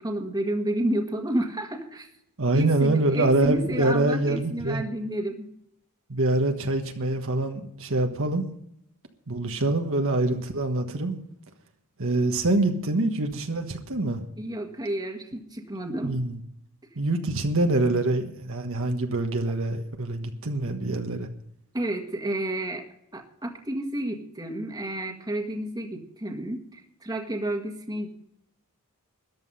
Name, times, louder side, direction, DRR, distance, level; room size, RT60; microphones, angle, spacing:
voice 1, 0.0-2.1 2.5-5.5 14.4-16.2 21.7-22.8 23.1-28.1, right 1 dB, 20° right, 3 dB, 1.6 m, -30 dB
voice 2, 2.4-4.8 6.1-8.4 9.3-11.2 12.0-14.2 16.0-16.4 17.0-21.3, right 2 dB, 65° right, 4 dB, 1.4 m, -25 dB
13.5 x 10.5 x 5.5 m, 0.76 s
head